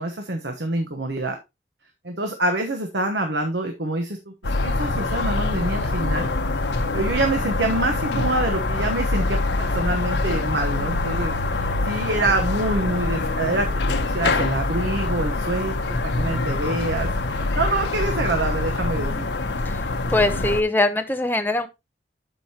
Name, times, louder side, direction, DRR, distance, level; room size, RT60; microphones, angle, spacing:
voice 1, 0.0-1.4 2.0-4.3 4.6-6.3 6.9-13.7 14.0-19.3, right 2 dB, 75° right, 4 dB, 1.2 m, -26 dB
sound 1, 4.4-20.6, left 2 dB, 80° left, 1.0 m, -24 dB
voice 2, 20.1-21.7, left 2 dB, 10° left, 6 dB, 0.9 m, -21 dB
12.0 x 5.2 x 2.9 m, 0.23 s
head